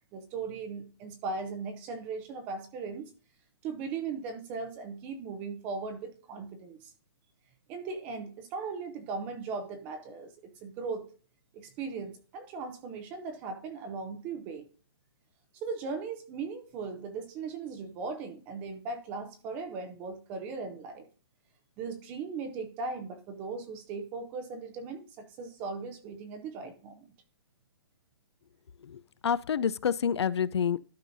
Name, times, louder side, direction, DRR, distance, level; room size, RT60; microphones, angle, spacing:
voice 1, 0.1-3.1 3.6-6.9 7.7-11.1 11.5-14.7 15.6-21.1 21.8-27.1, right 4 dB, 10° right, 0.5 m, -38 dB
voice 2, 28.8-30.8, left 7 dB, 85° left, 0.5 m, -28 dB
12.0 x 5.5 x 2.6 m
hypercardioid pair, 170°, 14 cm